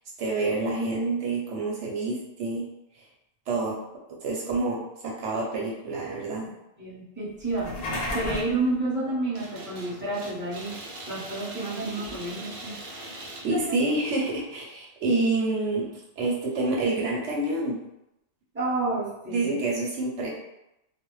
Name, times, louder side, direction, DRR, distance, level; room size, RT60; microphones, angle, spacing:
voice 1, 0.2-2.7 3.0-3.1 3.5-3.8 4.2-6.5 13.4-15.9 16.2-17.8 19.3-20.3, right 2 dB, 80° right, -3 dB, 1.0 m, -27 dB
voice 2, 6.8-10.8 11.1-13.2 13.5-13.8 18.5-19.5, right 2 dB, 10° right, -10 dB, 0.9 m, -30 dB
sound 1, 7.4-8.6, left 1 dB, 60° left, 0.8 m, -31 dB
sound 2, 9.3-14.4, right 2 dB, 60° right, 0.6 m, -42 dB
2.4 x 2.1 x 3.0 m, 0.86 s
omnidirectional pair, 1.2 m